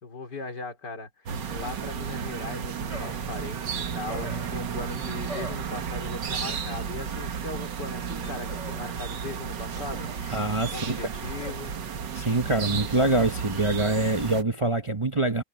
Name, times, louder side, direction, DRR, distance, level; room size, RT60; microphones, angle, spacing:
voice 1, 0.0-1.1 1.5-10.1 10.6-11.7, left 3 dB, 70° left, 4.1 m, -38 dB
sound 1, 1.3-14.4, right 7 dB, 80° right, 2.0 m, -33 dB
sound 2, 2.9-3.3 4.1-4.6 5.3-5.7 6.4-7.0 8.2-8.9 9.7-10.4 11.2-11.7, left 1 dB, 40° left, 5.6 m, -42 dB
voice 2, 10.3-11.0 12.1-15.4, right 2 dB, 30° right, 0.6 m, -25 dB
omnidirectional pair, 1.9 m